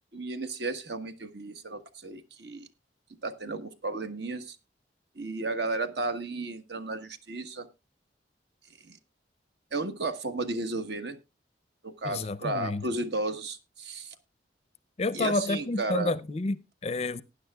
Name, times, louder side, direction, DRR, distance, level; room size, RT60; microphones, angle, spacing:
voice 1, 0.1-2.7 3.2-4.6 5.2-7.7 8.9-9.0 9.7-11.2 11.8-14.1 15.1-16.1, right 2 dB, 60° right, 1.2 m, -33 dB
voice 2, 12.0-12.8 15.0-17.2, left 3 dB, 35° left, 0.5 m, -30 dB
19.0 x 10.0 x 2.3 m
head